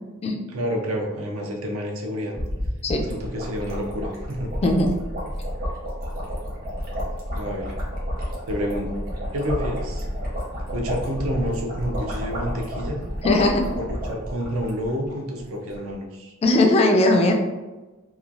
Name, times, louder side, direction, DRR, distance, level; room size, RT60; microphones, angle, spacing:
voice 1, 0.5-2.4 3.1-4.5 7.3-7.7 8.5-8.9 9.3-10.1 10.7-13.0 13.8-16.3, equal, 85° right, 1 dB, 0.6 m, -29 dB
sound 1, 2.3-15.1 15.4-15.5 15.7-15.9, equal, 45° right, 0.9 m, -31 dB
voice 2, 13.2-13.7 16.4-17.3, left 2 dB, 30° left, 3 dB, 0.3 m, -18 dB
3.0 x 2.3 x 2.4 m, 1.1 s
head